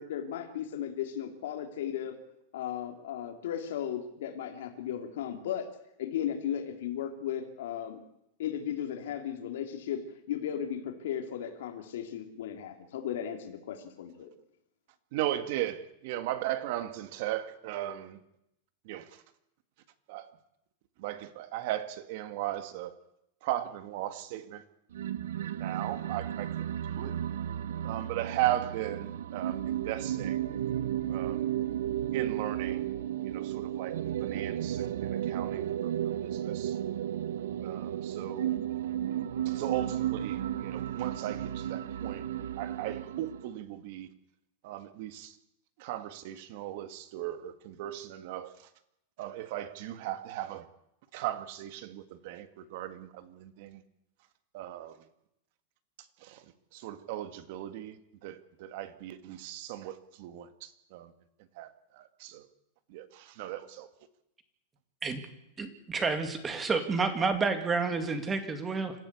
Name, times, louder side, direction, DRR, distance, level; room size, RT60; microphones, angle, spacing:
voice 1, 0.0-2.1 2.5-5.7 6.0-8.0 8.4-14.3, left 9 dB, 75° left, 3.3 m, -36 dB
voice 2, 15.1-18.2 18.9-19.1 20.1-20.3 21.0-22.9 23.4-24.6 25.5-26.5 26.9-27.2 27.8-30.4 31.1-31.5 32.1-32.9 33.2-35.9 36.2-36.8 37.6-38.5 39.5-42.3 42.6-44.1 44.6-45.3 45.8-48.6 49.2-50.7 51.1-53.8 54.5-55.0 56.2-56.4 56.7-61.1 61.6-62.5 62.9-63.9, right 13 dB, 50° right, 1.9 m, -37 dB
sound 1, 24.9-43.5, right 11 dB, 90° right, 1.0 m, -33 dB
voice 3, 65.6-68.9, right 4 dB, 15° right, 2.2 m, -30 dB
26.0 x 15.0 x 8.4 m
supercardioid pair, 170°, 0 cm